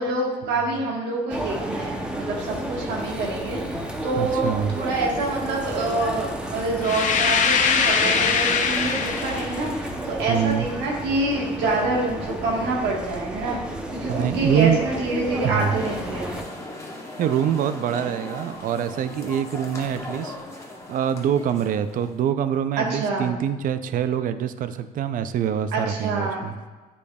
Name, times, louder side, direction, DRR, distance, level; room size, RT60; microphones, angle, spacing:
voice 1, 0.0-16.3 22.8-23.3 25.7-26.4, right 2 dB, 90° right, -2 dB, 1.4 m, -26 dB
sound 1, 1.3-16.4, right 1 dB, 5° right, 0.7 m, -32 dB
voice 2, 4.2-4.7 10.3-10.7 14.1-14.8 15.4-15.8 17.2-20.4 20.9-26.5, right 9 dB, 55° right, 12 dB, 0.4 m, -25 dB
sound 2, 6.8-9.6, left 6 dB, 50° left, 0.6 m, -22 dB
sound 3, 15.7-22.2, left 1 dB, 15° left, 1.1 m, -38 dB
8.5 x 5.1 x 2.3 m, 1.3 s
cardioid pair, 110°, 17 cm